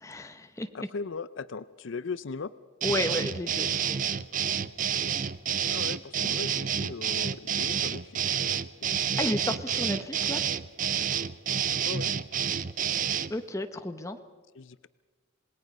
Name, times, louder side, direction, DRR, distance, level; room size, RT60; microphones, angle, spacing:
voice 1, 0.0-0.9 2.8-4.0 9.2-10.4 13.3-14.2, left 1 dB, 15° left, 7 dB, 1.0 m, -32 dB
voice 2, 0.7-2.5 5.7-8.3 11.8-12.1 14.5-14.9, left 4 dB, 65° left, 15 dB, 0.5 m, -38 dB
sound 1, 2.8-13.3, right 8 dB, 40° right, 0.6 m, -29 dB
27.5 x 19.5 x 5.4 m, 1.3 s
head